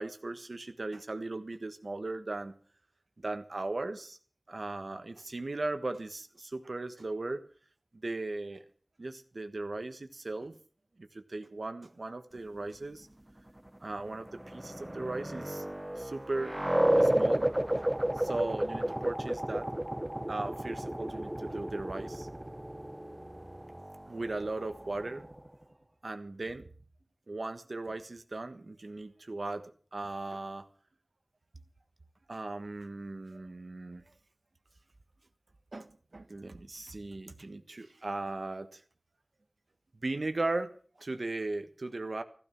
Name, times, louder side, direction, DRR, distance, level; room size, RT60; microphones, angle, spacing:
voice 1, 0.0-2.6 3.2-4.2 4.5-7.4 8.0-8.7 9.0-10.6 11.0-13.1 13.8-15.6 16.0-16.6 16.9-19.7 20.3-22.3 24.1-25.3 26.0-26.7 27.3-30.7 32.3-34.0 35.7-38.8 40.0-42.2, right 2 dB, 80° right, 8 dB, 1.4 m, -37 dB
sound 1, 14.1-25.5, right 1 dB, 20° right, 0.8 m, -32 dB
15.0 x 14.5 x 6.0 m, 0.43 s
wide cardioid pair, 50°, 0 cm